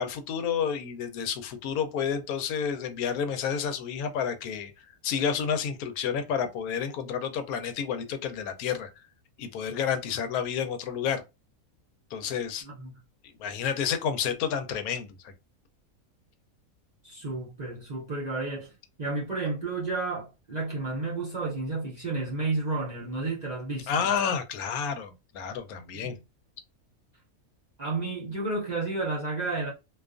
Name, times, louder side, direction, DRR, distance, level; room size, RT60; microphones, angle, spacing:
voice 1, 0.0-4.7 5.0-8.9 9.4-11.2 12.1-12.6 13.2-15.3 23.9-26.2, left 7 dB, 90° left, 1.1 m, -30 dB
voice 2, 12.6-12.9 17.0-18.7 19.0-24.1 25.9-26.1 27.8-29.7, right 3 dB, 45° right, 0.5 m, -31 dB
2.5 x 2.3 x 2.4 m
omnidirectional pair, 1.5 m